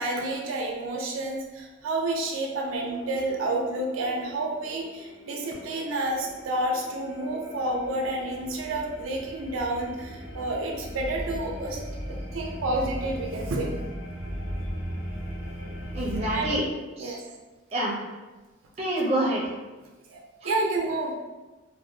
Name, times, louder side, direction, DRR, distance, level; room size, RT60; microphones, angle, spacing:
voice 1, 0.0-13.7 16.3-16.6 17.0-17.2 20.1-21.2, right 2 dB, 85° right, 0 dB, 0.4 m, -30 dB
sound 1, 2.8-16.6, equal, 90° left, 0.5 m, -38 dB
voice 2, 15.9-16.6 17.0-17.2 17.7-18.0 18.8-19.5 20.4-20.5, right 1 dB, 30° right, -4 dB, 0.5 m, -27 dB
2.5 x 2.2 x 2.6 m, 1.2 s
head